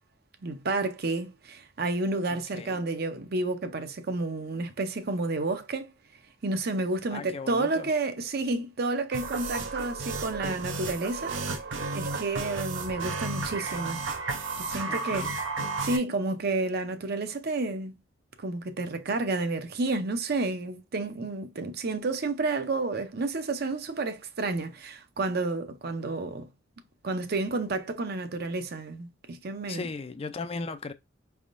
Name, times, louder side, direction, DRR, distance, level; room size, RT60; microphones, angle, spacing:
voice 1, 0.4-5.9 6.4-11.4 11.9-14.0 14.6-15.3 15.8-17.9 18.4-26.5 27.0-29.9, right 3 dB, 55° right, 0.6 m, -30 dB
voice 2, 7.1-7.9 14.9-15.3 29.7-30.9, left 3 dB, 30° left, 0.4 m, -37 dB
sound 1, 9.1-16.0, right 3 dB, 90° right, 0.9 m, -33 dB
5.2 x 3.5 x 2.5 m
head